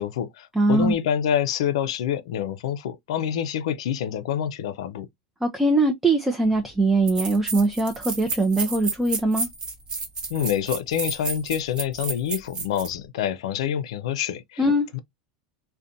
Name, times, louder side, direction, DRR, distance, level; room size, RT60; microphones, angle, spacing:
voice 1, 0.0-5.1 10.3-14.6 14.9-15.0, left 9 dB, 80° left, 0.4 m, -27 dB
voice 2, 0.6-0.9 5.4-9.5 14.6-14.9, right 2 dB, 10° right, 0.4 m, -21 dB
sound 1, 6.5-6.6 7.1-12.9, right 4 dB, 30° right, 0.9 m, -31 dB
2.5 x 2.1 x 2.5 m
hypercardioid pair, 110°, 3 cm